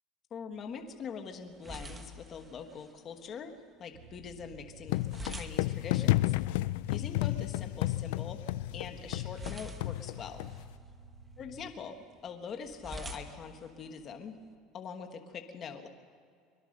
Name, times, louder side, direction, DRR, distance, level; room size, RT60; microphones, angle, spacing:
voice 1, 0.3-3.5 3.8-6.6 6.9-8.4 8.7-10.5 11.4-12.0 12.2-14.4 14.7-15.9, left 6 dB, 25° left, 5 dB, 1.3 m, -43 dB
sound 1, 0.5-14.5, right 1 dB, 10° right, 1.1 m, -50 dB
sound 2, 3.9-11.7, right 6 dB, 70° right, 1.8 m, -53 dB
sound 3, 4.9-10.7, left 18 dB, 75° left, 0.5 m, -32 dB
23.5 x 22.5 x 6.5 m, 2.2 s
cardioid pair, 180°, 0 cm